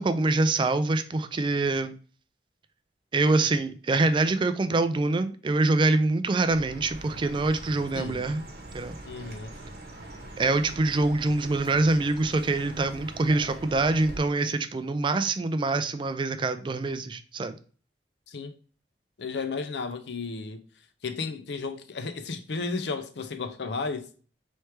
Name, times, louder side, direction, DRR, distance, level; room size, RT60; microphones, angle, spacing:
voice 1, 0.0-2.0 3.1-8.4 8.7-8.9 10.4-17.5, right 2 dB, 25° right, 0.3 m, -25 dB
Chirp tweet, 6.4-14.2, right 1 dB, 60° right, 0.9 m, -43 dB
voice 2, 9.1-9.5 18.3-18.5 19.2-20.6 21.0-24.1, left 4 dB, 75° left, 0.6 m, -33 dB
4.4 x 3.2 x 3.2 m
head